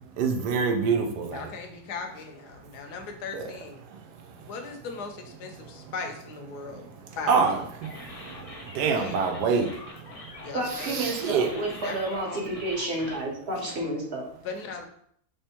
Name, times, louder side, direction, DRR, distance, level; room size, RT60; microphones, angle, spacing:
voice 1, 0.2-1.5 3.3-3.4 3.9-4.2 7.3-10.4 10.8-11.5, right 5 dB, 85° right, 1.3 m, -27 dB
voice 2, 1.3-3.8 4.4-6.9 7.2-7.6 9.0-9.3 10.4-11.1 11.8-12.6 13.5-13.9 14.4-14.9, left 4 dB, 80° left, 1.3 m, -38 dB
sound 1, 7.8-13.2, left 2 dB, 35° left, 0.5 m, -44 dB
voice 3, 10.5-14.2, right 1 dB, 45° right, 1.3 m, -30 dB
3.5 x 3.5 x 4.3 m
omnidirectional pair, 1.7 m